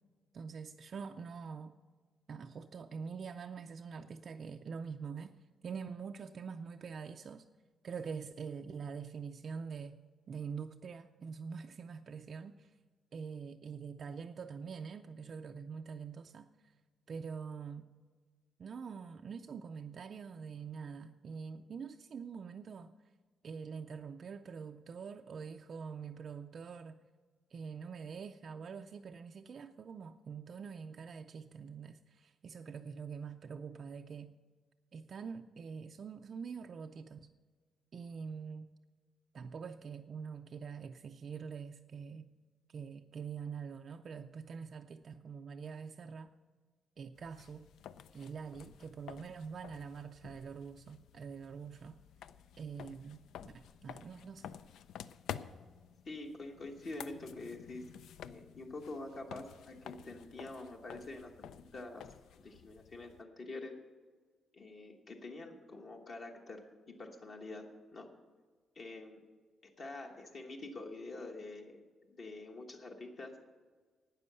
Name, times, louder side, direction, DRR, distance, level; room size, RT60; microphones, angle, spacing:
voice 1, 0.3-1.8 2.3-5.4 5.6-7.4 7.8-10.0 10.3-12.7 13.1-16.7 17.1-17.8 18.6-22.9 23.4-27.0 27.5-34.3 34.9-37.3 37.9-38.7 39.3-42.3 42.7-46.3 47.0-47.7 48.1-52.0 52.6-54.5, right 6 dB, 40° right, 5 dB, 0.4 m, -45 dB
sound 1, 47.1-63.2, left 9 dB, 90° left, 0.4 m, -51 dB
voice 2, 56.0-57.9 58.2-62.1 62.3-63.8 64.5-68.1 68.7-69.2 69.6-71.8 72.1-73.4, left 2 dB, 40° left, 2 dB, 1.2 m, -46 dB
12.0 x 9.2 x 6.7 m, 1.5 s
wide cardioid pair, 175°, 0 cm